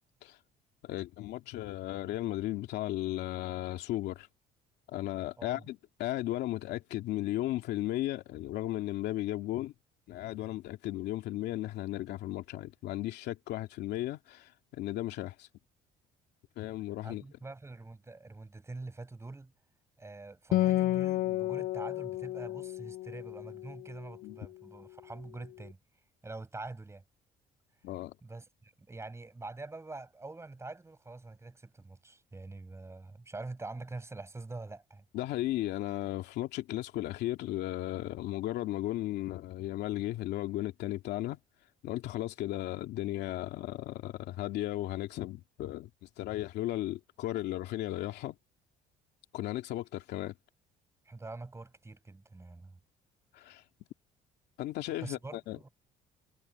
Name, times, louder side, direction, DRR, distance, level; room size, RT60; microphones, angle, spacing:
voice 1, 0.8-4.3 4.9-9.7 10.1-15.5 16.6-17.2 24.2-24.3 27.8-28.1 35.1-41.4 41.8-48.3 49.3-50.4 53.3-53.6 54.6-55.6, left 15 dB, 80° left, 2.6 m, -35 dB
voice 2, 17.0-19.5 20.0-25.8 26.2-27.0 28.2-35.0 51.0-52.8 55.0-55.7, right 3 dB, 15° right, 6.5 m, -45 dB
Acoustic guitar, 20.5-24.2, left 15 dB, 60° left, 0.4 m, -31 dB
cardioid pair, 110°, 17 cm